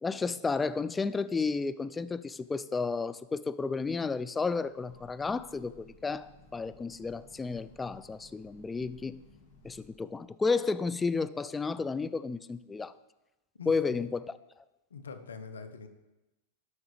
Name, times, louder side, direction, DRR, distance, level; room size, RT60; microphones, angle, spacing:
voice 1, 0.0-9.2 9.6-12.9 13.7-14.4, left 4 dB, 15° left, 14 dB, 0.3 m, -32 dB
Train, 4.5-10.2, left 1 dB, 65° left, 1.8 m, -58 dB
voice 2, 13.5-14.0 14.9-15.9, left 5 dB, 85° left, 9 dB, 0.8 m, -44 dB
12.5 x 5.9 x 3.2 m, 1.0 s
hypercardioid pair, 105°, 0 cm